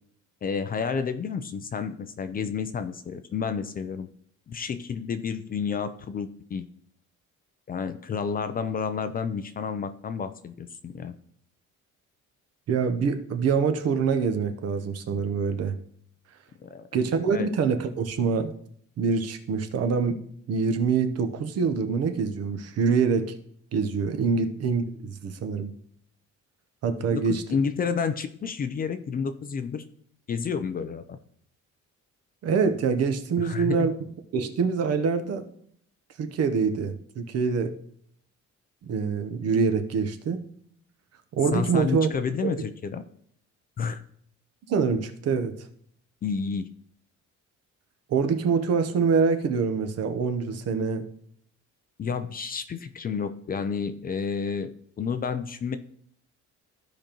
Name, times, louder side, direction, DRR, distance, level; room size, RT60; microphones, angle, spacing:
voice 1, 0.4-4.1 4.5-6.7 7.7-11.1 16.6-16.9 17.3-17.5 24.3-24.4 27.1-29.8 30.3-31.2 33.4-33.9 41.5-43.0 43.8-44.0 46.2-46.7 52.0-54.7 55.0-55.8, left 6 dB, 30° left, 10 dB, 0.4 m, -30 dB
voice 2, 12.7-15.8 16.9-18.5 19.0-20.2 20.5-23.4 23.7-25.7 26.8-27.4 32.4-33.9 34.3-35.5 36.2-37.7 38.8-40.4 41.3-42.1 42.4-42.5 44.7-45.5 48.1-51.1, right 5 dB, 55° right, 8 dB, 0.9 m, -25 dB
14.5 x 5.1 x 3.0 m, 0.65 s
cardioid pair, 165°, 29 cm